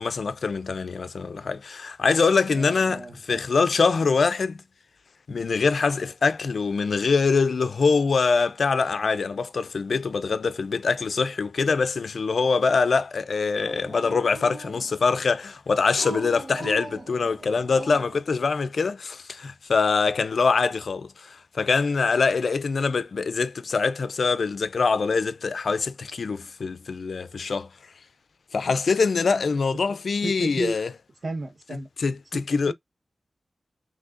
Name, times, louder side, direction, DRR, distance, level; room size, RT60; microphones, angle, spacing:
voice 1, 0.0-4.6 5.3-27.7 28.5-30.9 32.0-32.7, left 4 dB, 80° left, 0.5 m, -24 dB
voice 2, 2.5-3.4 29.7-29.8 30.2-30.7 31.2-31.9 32.3-32.4 32.7-32.8, right 2 dB, 70° right, 1.5 m, -33 dB
Dog, 13.6-15.1 15.9-18.3, right 2 dB, 50° right, 1.2 m, -39 dB
5.9 x 3.2 x 2.5 m
cardioid pair, 55°, 0 cm